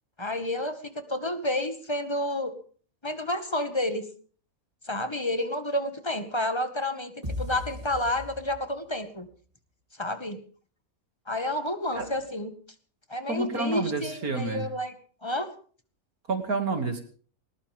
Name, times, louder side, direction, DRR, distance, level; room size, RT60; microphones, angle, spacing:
voice 1, 0.2-2.5 3.0-4.1 4.8-7.1 7.4-9.3 10.0-10.4 11.3-12.5 13.1-14.9 15.2-15.5, left 1 dB, 20° left, 8 dB, 1.9 m, -30 dB
sound 1, 7.2-9.0, left 1 dB, 25° right, 3.7 m, -37 dB
voice 2, 13.3-14.7 16.3-17.0, right 3 dB, 80° right, 5 dB, 3.0 m, -29 dB
20.0 x 19.5 x 3.6 m, 0.43 s
omnidirectional pair, 1.5 m